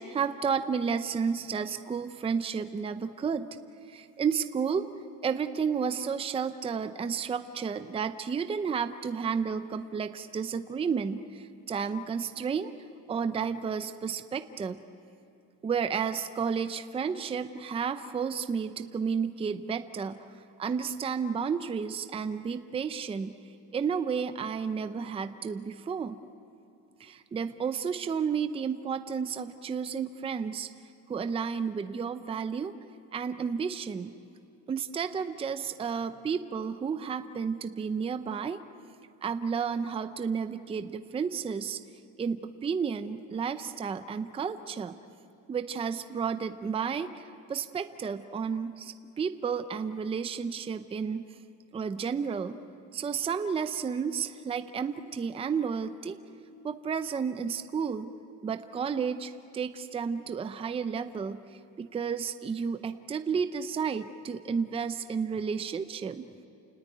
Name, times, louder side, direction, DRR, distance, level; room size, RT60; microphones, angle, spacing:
voice 1, 0.0-3.5 3.9-4.9 5.2-12.7 13.1-14.8 15.6-20.2 20.6-23.4 23.7-26.2 27.0-30.7 31.1-32.7 33.1-34.1 34.7-38.6 39.2-41.8 42.2-45.0 45.5-51.3 51.7-52.6 52.9-56.2 56.6-58.1 58.4-66.3, right 6 dB, 15° right, 10 dB, 0.6 m, -32 dB
29.0 x 19.0 x 9.3 m, 2.7 s
cardioid pair, 150°, 33 cm